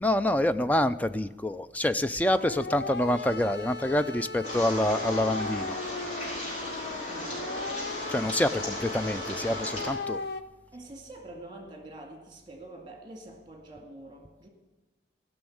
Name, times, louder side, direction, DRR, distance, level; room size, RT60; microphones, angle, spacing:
voice 1, 0.0-5.8 8.1-10.2, left 1 dB, 10° left, 12 dB, 0.3 m, -27 dB
sound 1, 2.4-10.4, left 4 dB, 65° left, 0.7 m, -37 dB
sound 2, 4.4-9.9, equal, 35° left, 5.4 m, -36 dB
voice 2, 7.1-7.6 10.7-14.5, right 1 dB, 25° right, 2 dB, 2.1 m, -45 dB
16.5 x 6.3 x 8.6 m, 1.2 s
head